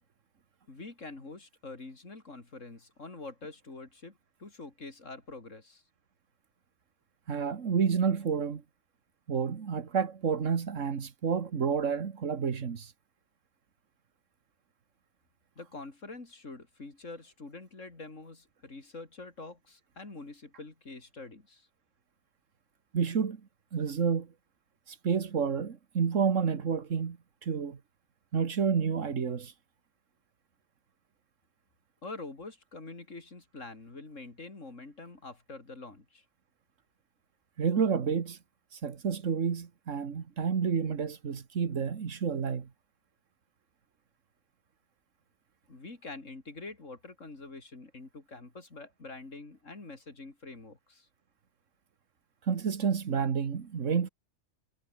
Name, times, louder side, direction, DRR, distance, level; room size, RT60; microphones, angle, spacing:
voice 1, 0.7-5.8 15.6-21.7 32.0-36.2 45.7-51.1, left 3 dB, 85° left, 4.0 m, -46 dB
voice 2, 7.3-8.6 9.3-12.9 22.9-23.4 23.7-24.3 24.9-27.2 27.4-27.8 28.3-29.5 37.6-38.4 38.7-42.7 52.4-54.1, right 6 dB, 90° right, 1.9 m, -29 dB
omnidirectional pair, 1.3 m